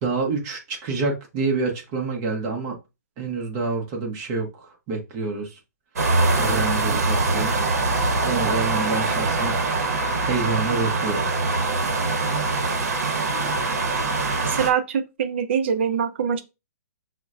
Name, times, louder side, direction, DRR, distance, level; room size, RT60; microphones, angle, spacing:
voice 1, 0.0-2.8 3.2-5.6 6.4-7.6 8.2-9.6 9.8-9.9 10.2-11.3, right 4 dB, 25° right, 0.8 m, -27 dB
sound 1, 6.0-14.7, right 3 dB, 65° right, 0.9 m, -23 dB
voice 2, 14.4-16.4, right 7 dB, 45° right, 0.5 m, -24 dB
5.6 x 2.1 x 2.4 m
hypercardioid pair, 165°, 9 cm